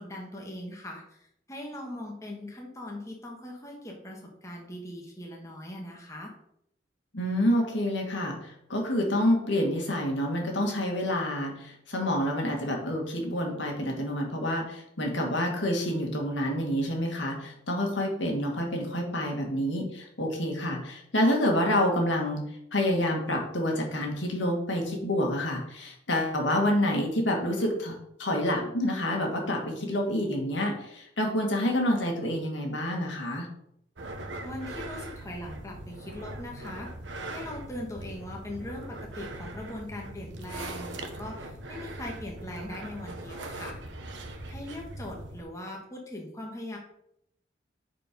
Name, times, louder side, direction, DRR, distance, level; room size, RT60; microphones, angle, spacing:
voice 1, 0.0-6.3 34.4-36.9 37.3-43.8 44.5-46.8, left 1 dB, 15° left, -1 dB, 1.3 m, -40 dB
voice 2, 7.1-22.4 22.7-33.5, left 1 dB, 80° left, 1 dB, 2.0 m, -28 dB
sound 1, 34.0-45.4, right 2 dB, 80° right, 1.0 m, -40 dB
7.5 x 4.5 x 5.3 m, 0.74 s
head